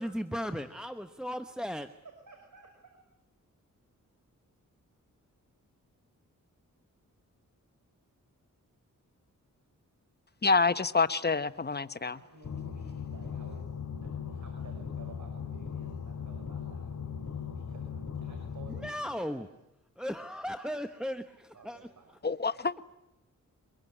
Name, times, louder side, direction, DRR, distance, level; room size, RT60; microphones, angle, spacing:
voice 1, 0.0-1.9 18.7-19.5 20.0-21.9, equal, ahead, 1.1 m, -36 dB
voice 2, 2.3-3.0 12.1-13.7 14.0-19.4 21.5-22.1 22.4-22.6, right 4 dB, 70° right, 5.6 m, -54 dB
voice 3, 10.4-12.2 22.2-22.7, left 4 dB, 30° left, 1.1 m, -27 dB
sound 1, 12.4-18.9, left 7 dB, 60° left, 4.6 m, -38 dB
24.5 x 22.0 x 9.8 m
cardioid pair, 75°, 32 cm